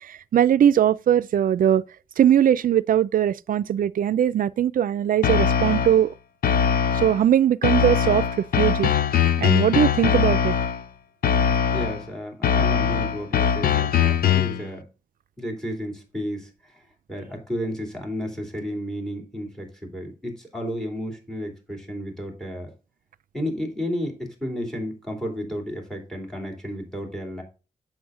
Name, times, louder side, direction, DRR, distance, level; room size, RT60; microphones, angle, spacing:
voice 1, 0.1-1.8 2.2-6.1 6.9-8.2 8.6-8.9 9.4-10.5, right 10 dB, 70° right, 0.4 m, -20 dB
sound 1, 5.2-6.0 6.4-7.2 7.6-10.8 11.2-12.0 12.4-14.6, left 8 dB, 85° left, 0.6 m, -21 dB
voice 2, 11.7-14.9 15.4-16.8 17.1-22.7 23.3-27.4, equal, 5° left, 2.9 m, -32 dB
7.9 x 6.3 x 3.7 m
wide cardioid pair, 120°, 15 cm